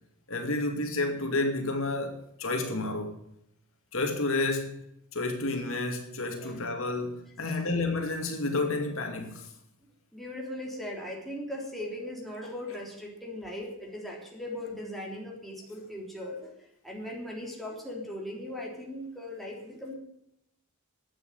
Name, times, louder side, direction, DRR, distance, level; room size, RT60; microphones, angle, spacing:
voice 1, 0.3-3.2 3.9-4.8 5.1-9.5, left 2 dB, 65° left, 2.5 m, -30 dB
voice 2, 10.1-16.5 16.8-20.0, left 1 dB, ahead, 3.5 m, -39 dB
12.0 x 9.0 x 9.4 m
head